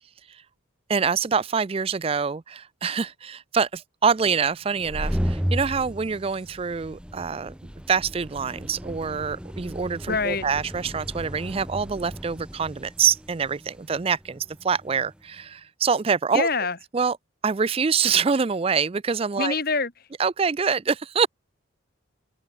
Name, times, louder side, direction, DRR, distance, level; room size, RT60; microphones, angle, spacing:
voice 1, 0.9-16.5 16.9-17.2 17.4-19.5 20.2-21.3, right 6 dB, 30° right, 0.4 m, -25 dB
sound 1, 4.7-15.2, equal, 5° right, 0.8 m, -34 dB
voice 2, 10.1-10.5 16.3-16.8 19.4-19.9, left 4 dB, 45° left, 2.3 m, -25 dB
open air
head